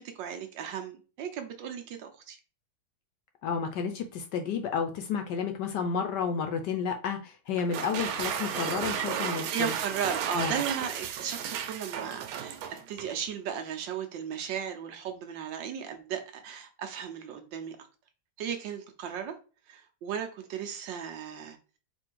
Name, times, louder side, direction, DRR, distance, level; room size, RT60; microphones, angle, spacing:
voice 1, 0.2-2.4 9.3-12.6 12.9-17.8 18.4-19.3 19.7-21.6, right 8 dB, 70° right, 1.3 m, -36 dB
voice 2, 3.4-9.7 10.3-10.6, left 6 dB, 70° left, 1.1 m, -31 dB
sound 1, 7.6-13.2, right 9 dB, 90° right, 1.5 m, -34 dB
4.2 x 2.6 x 4.5 m
omnidirectional pair, 2.2 m